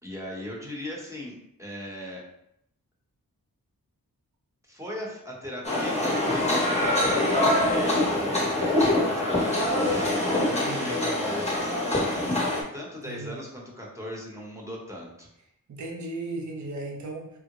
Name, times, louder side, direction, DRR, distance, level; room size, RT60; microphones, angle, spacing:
voice 1, 0.0-2.2 4.6-15.3, left 1 dB, 10° right, -3 dB, 0.9 m, -38 dB
sound 1, 5.6-12.6, left 1 dB, 20° left, 0.9 m, -24 dB
voice 2, 10.5-11.0 13.1-13.4 15.7-17.3, right 2 dB, 55° right, 2 dB, 0.6 m, -36 dB
3.6 x 2.0 x 2.9 m, 0.78 s
cardioid pair, 60°, 36 cm